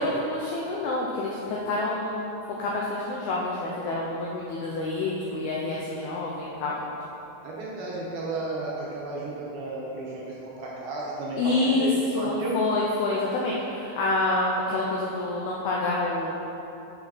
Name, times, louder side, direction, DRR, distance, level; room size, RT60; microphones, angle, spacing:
voice 1, 0.0-2.3 2.6-6.8 11.4-11.9 12.1-16.4, left 2 dB, 90° left, -4 dB, 2.2 m, -27 dB
voice 2, 7.4-11.9 12.2-12.6, right 3 dB, 70° right, -5 dB, 2.5 m, -33 dB
9.1 x 6.9 x 4.2 m, 2.9 s
omnidirectional pair, 5.4 m